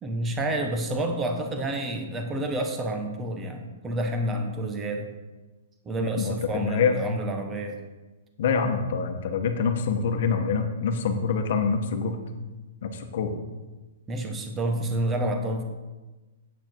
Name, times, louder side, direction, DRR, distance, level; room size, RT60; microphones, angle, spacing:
voice 1, 0.0-5.1 5.8-7.8 14.1-15.6, right 1 dB, 10° right, 5 dB, 0.9 m, -29 dB
voice 2, 6.0-7.0 8.4-12.2 12.8-13.3, left 5 dB, 50° left, 5 dB, 1.2 m, -25 dB
8.7 x 8.2 x 4.5 m, 1.2 s
hypercardioid pair, 170°, 0 cm